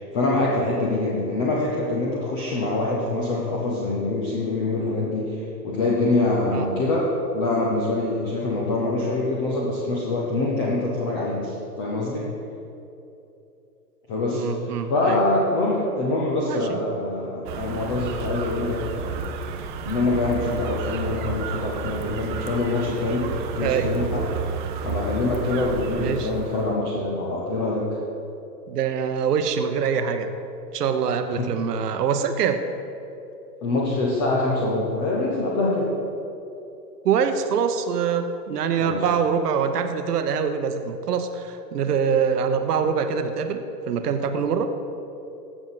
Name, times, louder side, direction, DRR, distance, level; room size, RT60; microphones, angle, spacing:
voice 1, 0.0-12.3 14.1-19.3 19.8-24.2 24.8-28.0 31.4-31.5 33.6-35.9 38.8-39.1, left 2 dB, 15° left, -4 dB, 0.4 m, -25 dB
voice 2, 14.3-15.2 16.5-16.8 23.6-23.9 26.0-26.3 28.7-30.3 30.7-32.6 37.0-44.7, right 6 dB, 65° right, 7 dB, 0.9 m, -24 dB
sound 1, 17.4-26.7, right 5 dB, 30° right, 0.6 m, -31 dB
15.5 x 6.2 x 4.0 m, 2.8 s
hypercardioid pair, 125°, 50 cm